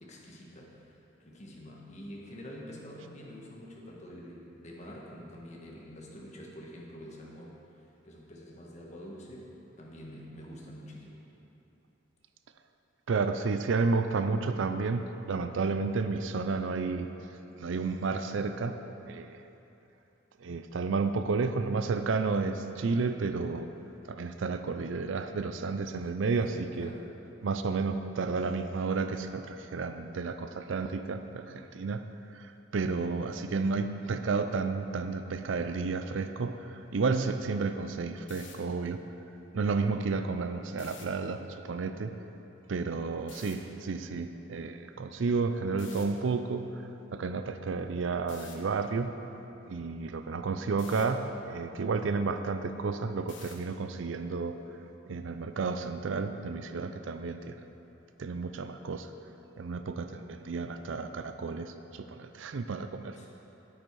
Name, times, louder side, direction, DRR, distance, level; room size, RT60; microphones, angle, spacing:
voice 1, 0.0-7.6 8.0-9.5 9.8-11.2 26.4-27.1 63.1-63.3, equal, 35° left, -3 dB, 1.5 m, -46 dB
voice 2, 13.1-17.1 17.6-18.8 19.1-19.4 20.4-23.7 24.1-26.9 27.4-32.0 32.3-39.0 39.5-42.2 42.7-49.2 49.7-54.6 55.1-57.6 58.2-59.1 59.6-63.2, right 4 dB, 70° right, 9 dB, 0.5 m, -31 dB
sound 1, 38.2-38.5 40.7-41.0 43.3-43.5 45.8-46.0 48.3-48.5 50.8-51.1 53.3-53.7, left 6 dB, 65° left, 1.2 m, -49 dB
10.5 x 8.9 x 4.7 m, 2.9 s
head